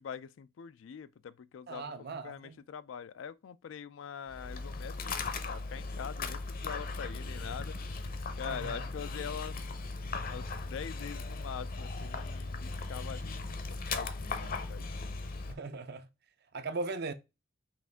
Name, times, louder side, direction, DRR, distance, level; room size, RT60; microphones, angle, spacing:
voice 1, 0.0-5.1 5.4-7.7 8.3-9.6 10.2-15.2, left 7 dB, 75° left, 0.3 m, -44 dB
voice 2, 1.7-2.6 8.4-8.9 14.4-14.5 15.5-16.1 16.5-17.1, right 3 dB, 55° right, 0.6 m, -39 dB
Dog, 4.3-15.5, left 3 dB, 50° left, 0.7 m, -38 dB
5.9 x 2.5 x 3.4 m
head